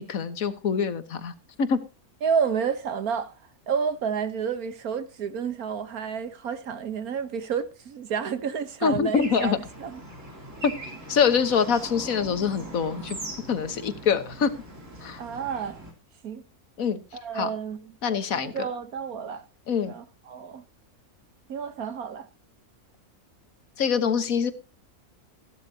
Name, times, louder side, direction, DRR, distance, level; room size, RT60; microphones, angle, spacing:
voice 1, 0.0-1.3 1.6-1.8 8.8-9.6 10.6-10.7 11.1-13.2 13.5-14.5 15.0-15.2 16.8-17.0 17.3-17.5 18.0-18.7 19.7-19.9 23.8-24.5, left 6 dB, 65° left, 1.7 m, -24 dB
voice 2, 2.2-3.3 3.7-10.0 15.2-15.8 16.2-16.4 17.1-17.8 18.3-19.4 19.9-20.6 21.5-22.3, right 6 dB, 75° right, 1.5 m, -30 dB
Bird / Traffic noise roadway noise, 9.1-15.9, right 2 dB, 55° right, 4.0 m, -41 dB
15.0 x 12.5 x 2.8 m
omnidirectional pair, 1.6 m